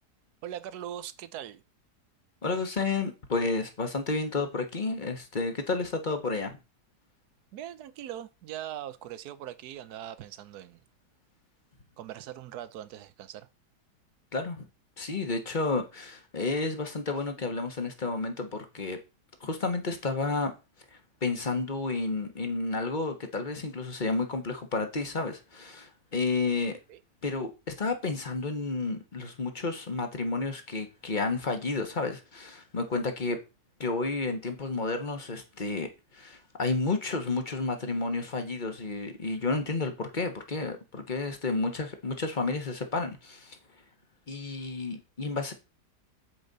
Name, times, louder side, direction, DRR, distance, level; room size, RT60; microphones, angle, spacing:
voice 1, 0.4-1.6 7.5-10.8 12.0-13.5 26.9-27.0, right 11 dB, 75° right, 1.2 m, -41 dB
voice 2, 2.4-6.6 14.3-14.7 15.0-19.0 19.4-20.5 21.2-26.8 27.2-33.4 33.8-43.6 44.3-45.5, left 3 dB, 30° left, 1.2 m, -31 dB
9.0 x 5.1 x 4.0 m
omnidirectional pair, 1.7 m